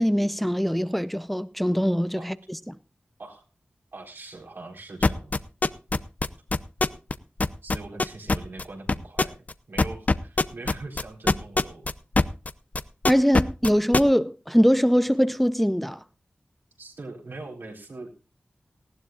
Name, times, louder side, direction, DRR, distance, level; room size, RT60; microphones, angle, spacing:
voice 1, 0.0-2.4 2.7-2.8 13.1-16.0, equal, 5° left, 0.6 m, -22 dB
voice 2, 3.9-5.3 7.6-9.4 9.7-11.9 16.8-18.1, right 2 dB, 75° right, 4.1 m, -41 dB
sound 1, 5.0-7.1 7.4-12.5 12.7-14.0, left 3 dB, 45° left, 0.6 m, -21 dB
19.0 x 15.0 x 2.4 m
wide cardioid pair, 70°, 4 cm